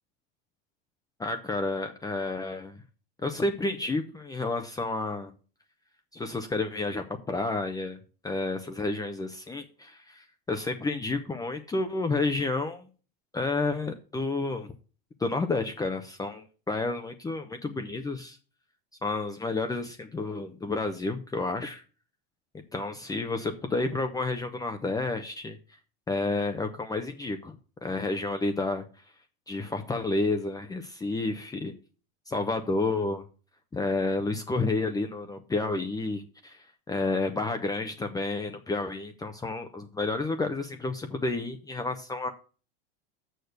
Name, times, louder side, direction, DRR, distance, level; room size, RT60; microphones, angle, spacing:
voice 1, 1.2-2.8 3.2-5.3 6.1-8.0 8.2-12.9 13.3-14.7 15.2-18.4 19.0-21.8 22.7-25.6 26.1-27.5 27.8-28.8 29.5-31.7 32.3-33.2 33.7-42.3, left 3 dB, 10° left, 6 dB, 0.7 m, -30 dB
6.7 x 6.5 x 6.5 m, 0.37 s
supercardioid pair, 115°, 30 cm